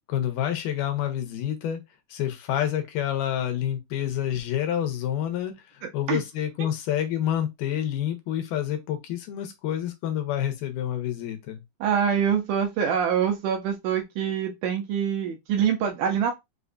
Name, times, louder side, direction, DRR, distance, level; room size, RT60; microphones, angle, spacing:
voice 1, 0.1-1.8 2.1-11.6, left 10 dB, 90° left, 2.4 m, -28 dB
voice 2, 5.8-6.2 11.8-16.3, right 8 dB, 80° right, 2.1 m, -25 dB
5.5 x 2.2 x 2.5 m
omnidirectional pair, 3.7 m